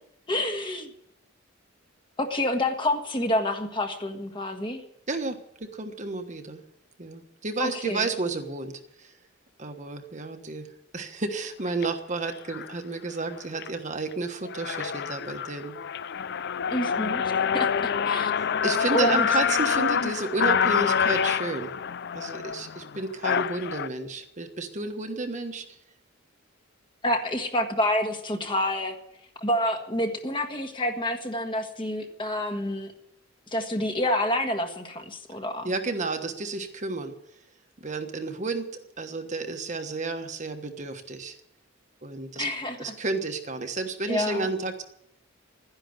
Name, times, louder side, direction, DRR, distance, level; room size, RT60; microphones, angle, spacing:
voice 1, 0.3-0.9 2.2-4.8 7.6-8.1 16.7-17.2 17.5-18.3 18.9-19.3 27.0-28.9 29.4-32.9 33.5-35.7 42.3-42.9 44.1-44.5, left 1 dB, 25° left, 4 dB, 1.6 m, -28 dB
voice 2, 5.1-6.6 7.0-9.1 9.6-10.7 10.9-15.7 18.4-21.7 22.1-25.6 35.6-37.1 37.8-38.7 39.0-41.4 42.0-42.5 42.8-44.8, right 3 dB, 35° right, 6 dB, 1.3 m, -31 dB
sound 1, 11.7-11.9 12.5-12.8 13.2-13.7 14.1-14.2 14.4-23.9, left 7 dB, 55° left, 0.5 m, -26 dB
12.5 x 10.5 x 9.5 m, 0.77 s
head